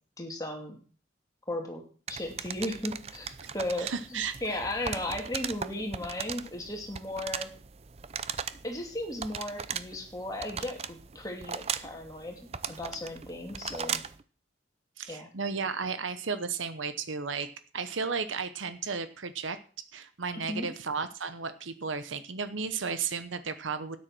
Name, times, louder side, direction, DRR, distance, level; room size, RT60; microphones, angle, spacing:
voice 1, 0.2-0.8 1.5-1.8 2.1-7.5 8.6-14.0 15.1-15.3 20.3-20.7, left 1 dB, 20° left, 2 dB, 2.6 m, -36 dB
sound 1, 2.1-14.2, right 7 dB, 30° right, 0.5 m, -38 dB
voice 2, 3.8-4.3 15.0-19.6 19.9-24.0, right 5 dB, 85° right, 11 dB, 1.0 m, -34 dB
13.0 x 9.7 x 6.1 m, 0.41 s
head